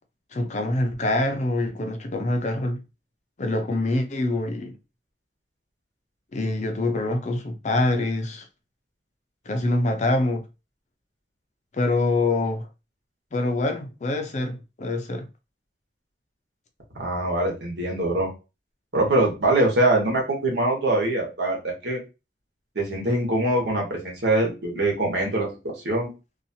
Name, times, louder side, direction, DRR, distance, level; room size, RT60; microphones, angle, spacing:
voice 1, 0.3-2.8 3.4-4.7 6.3-8.5 9.5-10.4 11.7-12.7 13.3-15.3, left 2 dB, 40° left, 0.5 m, -25 dB
voice 2, 16.9-18.3 18.9-22.0 22.7-26.1, right 1 dB, 75° right, 1.2 m, -23 dB
2.7 x 2.4 x 2.7 m
head